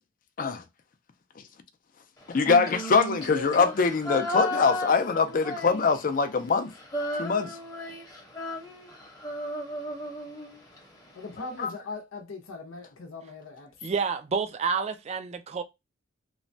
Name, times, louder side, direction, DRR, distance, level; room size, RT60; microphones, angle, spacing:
voice 1, 2.3-6.7 7.2-7.6 11.6-11.7, left 5 dB, 45° left, 0.4 m, -23 dB
Female singing, 2.3-6.2 6.5-10.8, left 1 dB, 20° left, 0.8 m, -34 dB
voice 2, 11.1-13.7, left 3 dB, 90° left, 0.7 m, -40 dB
voice 3, 13.8-15.6, right 5 dB, 30° right, 0.3 m, -29 dB
3.0 x 2.1 x 2.6 m
head